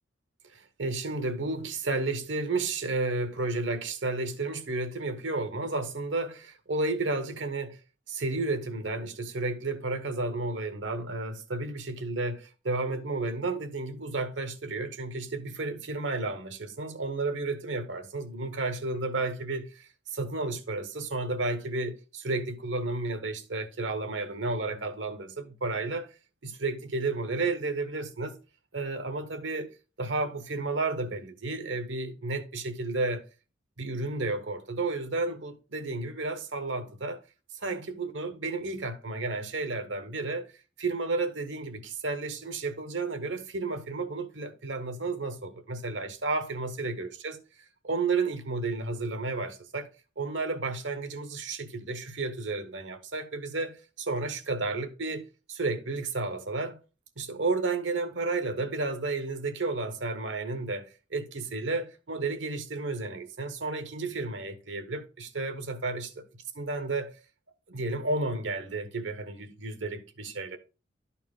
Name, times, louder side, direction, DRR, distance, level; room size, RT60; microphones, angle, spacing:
voice 1, 0.5-7.8 8.1-26.1 26.4-28.4 28.7-33.2 33.8-37.2 37.6-40.5 40.8-47.4 47.8-49.9 50.2-55.2 55.5-56.8 57.2-66.1 66.6-67.2 67.7-70.6, right 3 dB, 85° right, 1.1 m, -32 dB
11.5 x 4.3 x 3.7 m
head